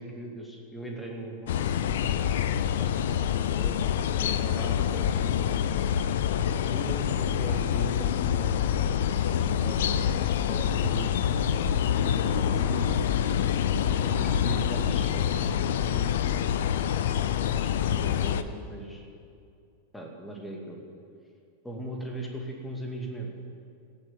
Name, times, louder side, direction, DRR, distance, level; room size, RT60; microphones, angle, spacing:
voice 1, 0.0-2.1 2.7-3.7 4.2-5.6 6.7-8.9 9.2-10.2 10.5-11.5 11.8-13.4 13.9-16.3 17.2-19.1 19.9-20.8 21.6-23.3, right 1 dB, 5° left, 1 dB, 2.2 m, -39 dB
sound 1, 1.5-18.4, left 9 dB, 60° left, 0.5 m, -26 dB
17.0 x 7.2 x 7.5 m, 2.4 s
figure-of-eight pair, 90°, 0 cm